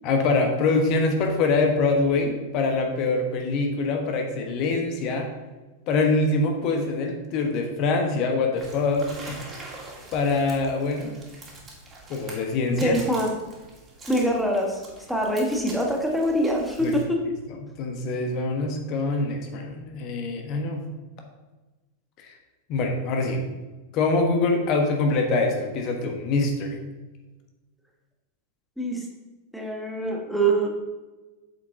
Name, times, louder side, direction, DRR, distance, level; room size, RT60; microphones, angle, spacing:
voice 1, 0.0-5.3 5.9-9.4 10.1-11.1 12.1-12.9 16.8-16.9 17.5-20.8 22.2-22.3 22.7-23.4 23.9-26.8, left 3 dB, 40° left, 2 dB, 1.3 m, -24 dB
sound 1, 8.6-17.0, right 2 dB, 20° right, 2.4 m, -44 dB
voice 2, 12.7-13.3 14.1-14.8 15.1-17.2 28.8-29.0 29.5-30.7, right 1 dB, ahead, 0 dB, 1.3 m, -24 dB
8.3 x 7.3 x 3.7 m, 1.2 s
figure-of-eight pair, 90°, 0 cm